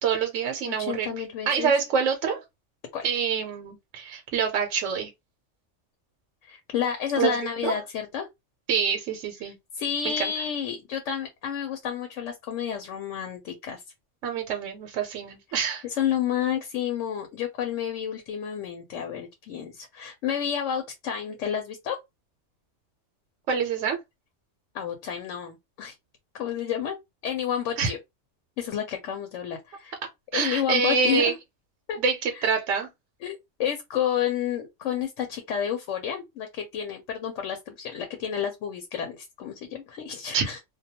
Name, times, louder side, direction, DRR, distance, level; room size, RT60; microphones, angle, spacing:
voice 1, 0.0-2.4 3.0-5.1 7.2-7.3 7.6-7.7 8.7-9.6 10.0-10.3 14.2-15.8 23.5-24.0 27.8-27.9 30.3-31.3 32.0-32.9 40.3-40.5, right 6 dB, 85° right, 0.9 m, -26 dB
voice 2, 0.7-1.7 2.9-3.1 6.4-8.3 9.4-13.8 15.5-15.6 15.8-22.0 24.7-25.9 26.3-27.0 27.2-28.0 28.6-29.9 30.3-31.3 31.9-32.0 32.3-32.5 33.2-40.6, left 9 dB, 80° left, 0.9 m, -30 dB
2.2 x 2.2 x 2.8 m
omnidirectional pair, 1.3 m